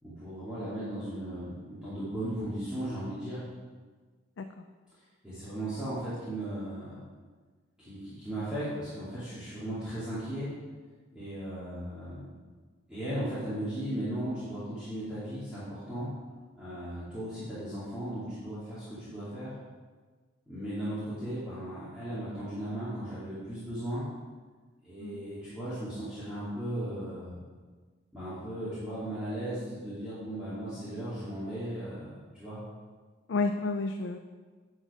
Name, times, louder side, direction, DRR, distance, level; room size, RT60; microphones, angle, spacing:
voice 1, 0.0-3.4 5.2-7.0 7.8-10.5 11.1-12.3 12.9-16.1 16.6-19.5 20.5-24.0 24.8-27.4 28.1-32.6, right 1 dB, 5° right, -13 dB, 2.4 m, -36 dB
voice 2, 33.3-34.2, left 3 dB, 65° left, 6 dB, 0.4 m, -31 dB
10.5 x 5.2 x 4.9 m, 1.4 s
head